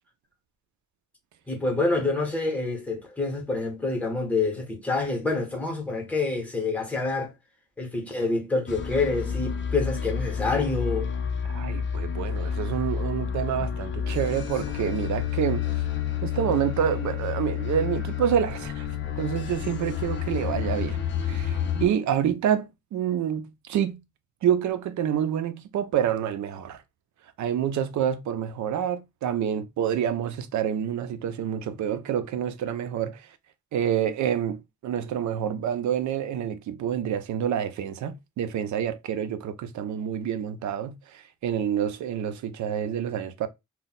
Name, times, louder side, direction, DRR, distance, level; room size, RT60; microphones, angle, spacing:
voice 1, 1.5-7.3 7.8-11.1, left 3 dB, 5° left, 0.7 m, -27 dB
sound 1, 8.7-21.9, left 8 dB, 35° left, 0.4 m, -30 dB
voice 2, 11.5-15.6 16.2-18.9 19.2-21.0 21.2-24.0 24.4-26.8 27.4-33.4 33.7-43.5, right 9 dB, 60° right, 0.5 m, -28 dB
2.2 x 2.1 x 3.8 m
wide cardioid pair, 170°, 32 cm